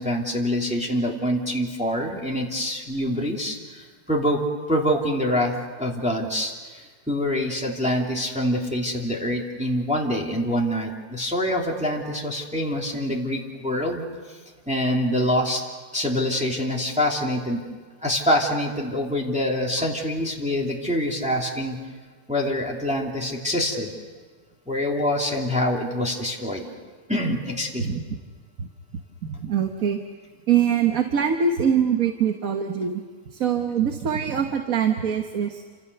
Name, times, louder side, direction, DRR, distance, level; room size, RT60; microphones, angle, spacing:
voice 1, 0.0-4.4 4.7-14.0 14.7-15.6 15.9-17.6 18.0-21.8 22.3-23.9 24.7-26.7 27.1-28.0, left 1 dB, 5° right, -2 dB, 2.8 m, -25 dB
voice 2, 29.2-30.0 30.5-33.0 33.4-35.6, right 7 dB, 70° right, 5 dB, 1.7 m, -23 dB
29.5 x 26.0 x 6.8 m, 1.5 s
omnidirectional pair, 1.5 m